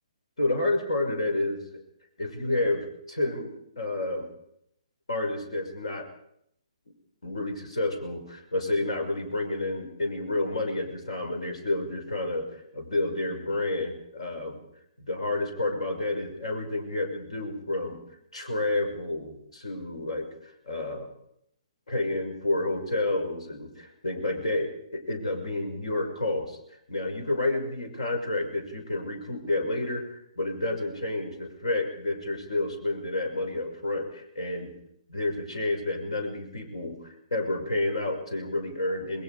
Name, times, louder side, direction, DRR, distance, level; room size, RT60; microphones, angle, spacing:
voice 1, 0.4-1.8 2.2-4.3 5.1-6.1 7.2-14.6 15.1-18.0 18.3-21.1 21.9-26.6 26.9-30.1 30.4-34.7 35.1-39.2, left 2 dB, 65° left, 6 dB, 5.8 m, -30 dB
27.5 x 21.0 x 5.0 m, 0.73 s
figure-of-eight pair, 130°, 4 cm